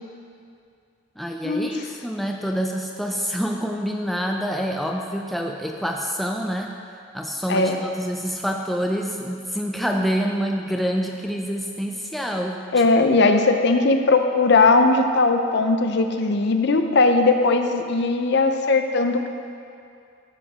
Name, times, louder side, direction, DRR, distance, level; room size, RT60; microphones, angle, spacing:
voice 1, 1.2-6.7 7.1-12.6 13.1-13.2, equal, ahead, 1 dB, 0.3 m, -27 dB
voice 2, 12.7-19.3, left 3 dB, 55° left, 6 dB, 0.6 m, -19 dB
12.0 x 5.0 x 4.9 m, 2.4 s
head